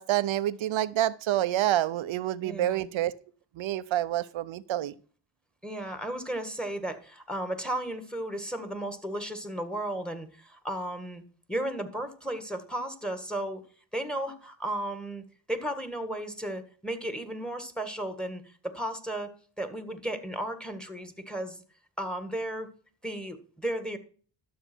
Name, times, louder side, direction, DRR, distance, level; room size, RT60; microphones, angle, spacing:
voice 1, 0.0-3.1 3.6-4.9, right 13 dB, 85° right, 14 dB, 0.7 m, -28 dB
voice 2, 2.4-2.8 5.6-11.2 11.5-13.6 13.9-21.6 22.0-22.7 23.0-24.0, right 1 dB, ahead, 9 dB, 1.7 m, -34 dB
12.0 x 6.8 x 4.5 m, 0.42 s
cardioid pair, 65°, 46 cm